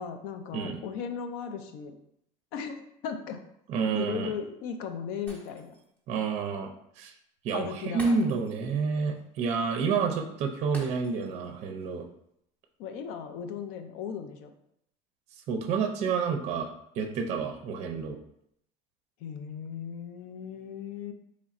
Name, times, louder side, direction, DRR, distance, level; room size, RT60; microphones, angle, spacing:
voice 1, 0.0-2.0 2.5-3.4 3.9-5.7 7.5-8.2 12.8-14.5 19.2-21.1, left 7 dB, 75° left, 7 dB, 0.5 m, -37 dB
voice 2, 3.7-4.3 6.1-6.7 7.0-7.1 7.4-12.0 15.5-16.7 16.9-18.2, right 5 dB, 50° right, 4 dB, 0.5 m, -29 dB
Shatter, 5.3-6.0 6.3-6.5 8.0-8.8 9.1-9.2 10.7-11.5 11.8-12.0, equal, 10° left, 0.8 m, -47 dB
4.1 x 3.1 x 2.4 m, 0.74 s
cardioid pair, 145°, 15 cm